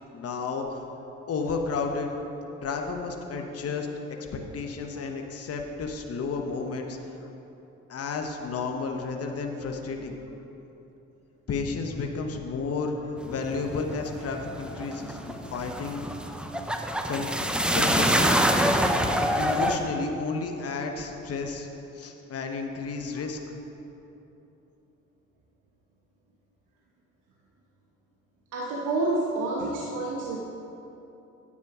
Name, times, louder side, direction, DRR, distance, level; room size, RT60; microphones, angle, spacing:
voice 1, 0.1-0.9 1.3-2.1 2.6-3.9 4.2-7.0 7.9-10.1 11.5-16.1 17.1-17.3 17.7-18.3 19.4-21.7 21.9-23.4, left 4 dB, 50° left, 3 dB, 1.1 m, -32 dB
sound 1, 13.2-19.8, equal, 5° right, 0.6 m, -26 dB
voice 2, 14.9-15.3 23.1-23.2 28.5-30.4, right 2 dB, 80° right, -3 dB, 1.1 m, -29 dB
9.7 x 8.7 x 4.8 m, 3.0 s
cardioid pair, 90°, 30 cm